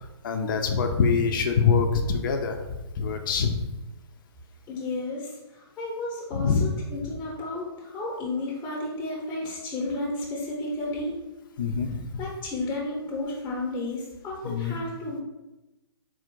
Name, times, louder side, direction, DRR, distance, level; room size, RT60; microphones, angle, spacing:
voice 1, 0.2-3.7 6.3-6.6 11.6-12.1 14.4-14.8, left 5 dB, 50° left, 5 dB, 0.5 m, -24 dB
voice 2, 4.7-11.2 12.2-15.2, left 2 dB, 15° left, -3 dB, 0.8 m, -32 dB
4.0 x 2.5 x 4.5 m, 1.0 s
hypercardioid pair, 145°, 14 cm